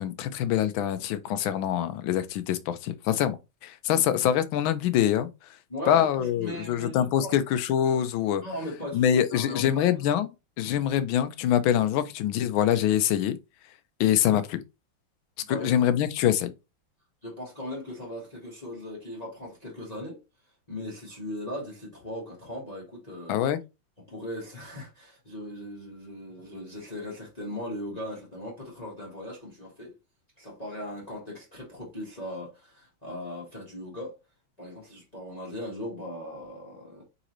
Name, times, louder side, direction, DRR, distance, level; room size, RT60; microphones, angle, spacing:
voice 1, 0.0-3.4 3.6-5.3 5.9-8.4 8.9-10.3 10.6-13.4 14.0-14.6 15.5-16.5 23.3-23.6, left 10 dB, 80° left, 1.4 m, -24 dB
voice 2, 5.7-7.3 8.4-9.9 15.4-15.7 17.2-20.2 20.7-23.4 24.1-29.9 30.4-34.1 34.6-37.0, left 1 dB, 25° left, 1.3 m, -38 dB
4.0 x 3.8 x 3.0 m
omnidirectional pair, 2.2 m